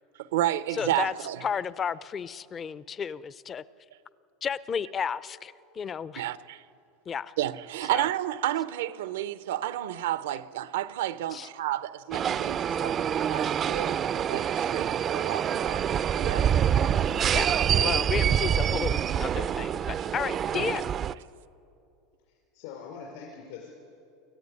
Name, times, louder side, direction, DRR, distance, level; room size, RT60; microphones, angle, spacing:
voice 1, 0.2-1.4 6.2-6.6 7.4-15.9 16.2-16.5 17.4-18.0 20.6-20.7, right 13 dB, 85° right, 0.8 m, -31 dB
voice 2, 0.7-1.1 1.4-3.6 4.4-6.2 7.1-7.3 7.9-8.1 11.3-11.5 15.9-16.0 17.3-17.5 17.8-20.9, left 7 dB, 25° left, 0.5 m, -32 dB
sound 1, 12.1-21.1, right 9 dB, 30° right, 0.4 m, -26 dB
voice 3, 22.3-23.7, left 6 dB, 70° left, 5.0 m, -43 dB
23.5 x 15.0 x 9.7 m
supercardioid pair, 125°, 0 cm